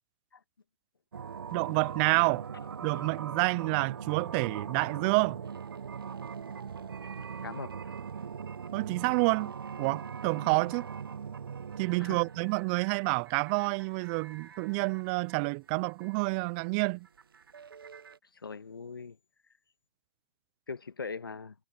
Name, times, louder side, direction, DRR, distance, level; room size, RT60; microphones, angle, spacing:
sound 1, 1.1-18.2, right 6 dB, 85° right, 0.4 m, -41 dB
voice 1, 1.5-2.5 2.8-5.4 8.7-10.9 11.8-17.1, right 33 dB, 30° right, 0.4 m, -29 dB
voice 2, 7.4-7.9 12.0-12.2 18.3-19.2 20.7-21.5, left 5 dB, 85° left, 1.7 m, -41 dB
hypercardioid pair, 135°, 12 cm